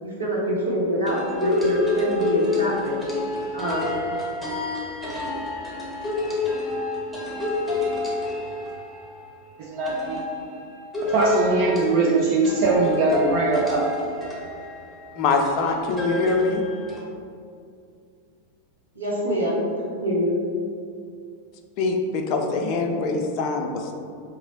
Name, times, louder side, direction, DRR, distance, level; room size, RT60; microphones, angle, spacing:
voice 1, 0.0-3.0 3.5-3.8 18.9-20.4, equal, 75° right, -5 dB, 0.9 m, -25 dB
Toy Piano Breakdown, 1.1-9.3 9.9-17.0, left 2 dB, ahead, 0.8 m, -29 dB
voice 2, 9.6-10.2 11.0-13.8, right 3 dB, 45° right, -3 dB, 0.4 m, -21 dB
voice 3, 15.2-16.6 21.8-24.0, left 3 dB, 40° left, 3 dB, 0.4 m, -24 dB
2.9 x 2.7 x 3.8 m, 2.3 s
figure-of-eight pair, 90°, 0 cm